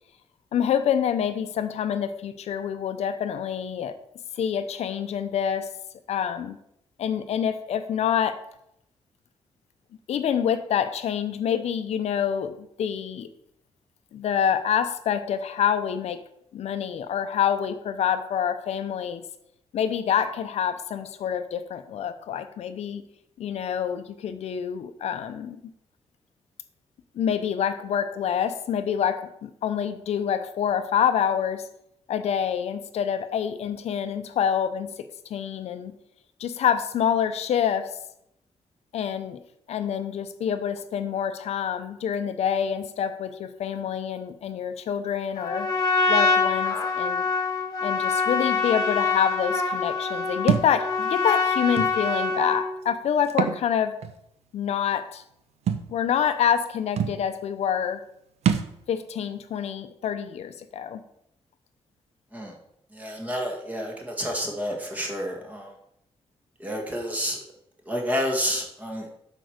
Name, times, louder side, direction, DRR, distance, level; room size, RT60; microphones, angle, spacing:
voice 1, 0.5-3.9 4.4-5.7 6.1-6.6 7.0-8.4 10.1-13.3 14.1-16.2 16.5-19.2 19.7-23.0 23.4-25.6 27.2-31.7 32.1-35.9 36.4-37.9 38.9-39.4 39.7-45.7 46.1-47.3 47.8-54.0 54.5-55.2 55.9-58.0 58.9-61.0, left 8 dB, 90° left, 10 dB, 0.7 m, -27 dB
Trumpet, 45.4-52.7, left 4 dB, 30° left, 1.6 m, -25 dB
Thump thud, 50.5-50.7 51.8-51.9 53.2-53.6 54.0-54.1 55.7-55.9 56.6-56.7 57.0-57.2 58.4-58.7, right 8 dB, 90° right, 0.8 m, -24 dB
voice 2, 62.9-65.7 66.6-67.4 67.9-69.1, equal, 15° right, 1 dB, 1.7 m, -29 dB
8.0 x 4.6 x 6.5 m, 0.76 s
wide cardioid pair, 175°, 11 cm